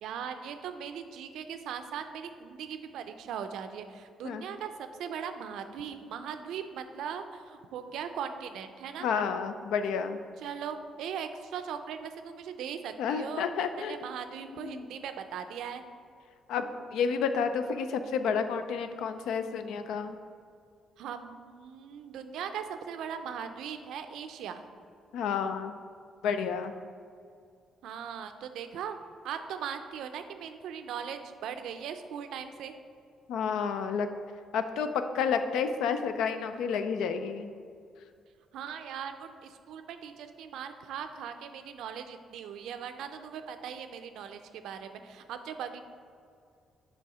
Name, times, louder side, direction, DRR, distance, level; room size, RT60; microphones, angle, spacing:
voice 1, 0.0-9.1 10.4-13.5 13.8-15.8 21.0-24.6 27.8-29.0 29.2-32.7 38.5-45.8, right 7 dB, 80° right, 8 dB, 0.4 m, -39 dB
voice 2, 9.0-10.2 13.0-14.0 14.5-14.9 16.5-20.1 25.1-25.7 26.2-26.7 33.3-34.1 34.5-34.9 35.1-37.5, left 6 dB, 85° left, 9 dB, 0.4 m, -30 dB
6.8 x 3.3 x 4.8 m, 2.3 s
cardioid pair, 90°, 0 cm